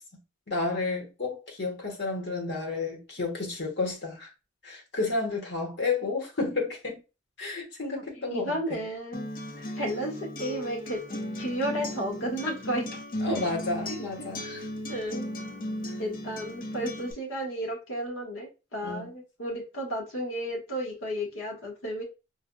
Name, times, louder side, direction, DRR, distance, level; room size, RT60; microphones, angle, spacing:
voice 1, 0.5-4.3 4.6-7.0 7.4-8.8 9.6-9.7 13.2-14.6 18.8-19.1, left 3 dB, 60° left, 1.3 m, -31 dB
voice 2, 8.1-9.3 9.6-11.0 11.4-12.9 13.3-13.4 13.9-14.3 14.9-15.3 16.0-22.0, right 1 dB, 85° left, 1.3 m, -33 dB
Acoustic guitar, 9.1-17.1, left 1 dB, 45° left, 0.6 m, -36 dB
4.5 x 2.6 x 2.2 m
head